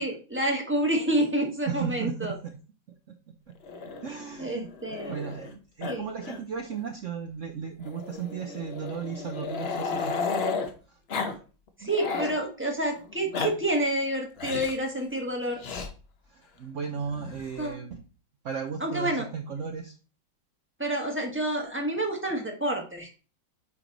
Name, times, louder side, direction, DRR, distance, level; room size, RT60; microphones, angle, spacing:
voice 1, 0.0-2.3 4.4-5.1 5.9-6.1 11.8-15.6 17.6-17.8 18.8-19.3 20.8-23.2, right 1 dB, 10° right, 1 dB, 0.9 m, -28 dB
voice 2, 1.7-2.5 3.5-3.6 4.0-4.7 5.0-10.1 11.8-12.4 16.3-18.0 18.4-19.9, right 6 dB, 75° right, 5 dB, 0.7 m, -35 dB
Growling, 3.6-5.5 5.8-6.0 6.2-6.4 6.7-6.8 7.8-10.7 11.1-11.4 11.7-12.4 13.1-13.5 14.4-14.8 15.6-15.9 17.0-17.7, left 4 dB, 55° left, 0.7 m, -33 dB
9.3 x 3.1 x 3.9 m, 0.36 s
omnidirectional pair, 2.1 m